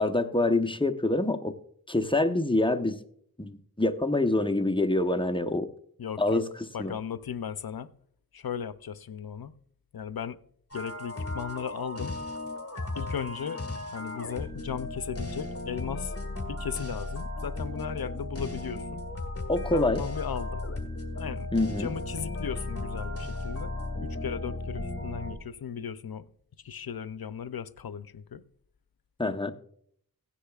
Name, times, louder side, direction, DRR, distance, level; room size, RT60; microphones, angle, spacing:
voice 1, 0.0-1.5 1.9-3.0 3.4-5.7 6.2-6.9 19.5-20.0 21.5-21.9 29.2-29.5, left 2 dB, 15° left, 0.8 m, -26 dB
voice 2, 6.0-6.4 6.7-7.9 8.3-9.5 9.9-10.4 10.7-12.1 13.0-13.6 13.9-16.1 16.5-19.0 19.7-20.6 21.1-21.5 21.8-23.7 24.0-26.3 26.6-28.4, left 7 dB, 75° left, 0.6 m, -36 dB
sound 1, 10.7-25.3, left 2 dB, 40° left, 1.7 m, -35 dB
16.5 x 10.0 x 2.4 m
wide cardioid pair, 50°, 36 cm